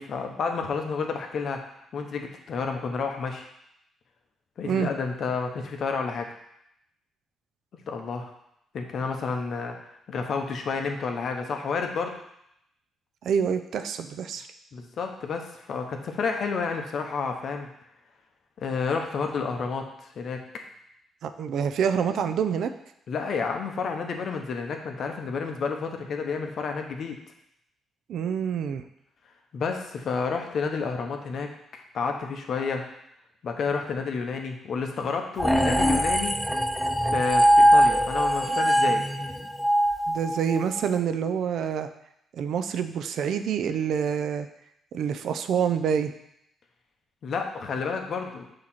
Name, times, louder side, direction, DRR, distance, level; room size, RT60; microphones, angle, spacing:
voice 1, 0.0-1.6 1.9-3.5 4.6-6.3 7.9-8.3 8.7-9.8 10.1-12.1 14.7-17.7 18.6-19.9 20.2-20.4 23.1-27.2 29.5-32.8 33.4-36.3 37.1-39.0 47.2-48.4, left 5 dB, 60° left, 4 dB, 0.9 m, -30 dB
voice 2, 13.2-14.5 21.2-22.7 28.1-28.8 40.1-41.9 42.3-44.5 44.9-46.1, right 7 dB, 70° right, 9 dB, 0.4 m, -27 dB
sound 1, 35.4-40.8, equal, 5° left, 0.5 m, -21 dB
6.3 x 2.9 x 5.7 m, 0.77 s
cardioid pair, 90°, 0 cm